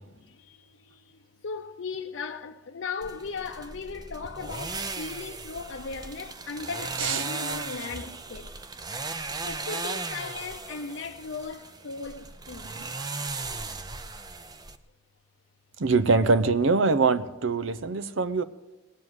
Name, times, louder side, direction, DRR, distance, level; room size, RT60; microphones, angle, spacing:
voice 1, 0.1-8.5 9.4-12.7, left 5 dB, 80° left, 0.6 m, -37 dB
sound 1, 3.0-14.8, right 3 dB, 20° right, 0.6 m, -37 dB
voice 2, 15.8-18.4, right 4 dB, 90° right, 0.7 m, -23 dB
19.5 x 7.4 x 7.9 m
head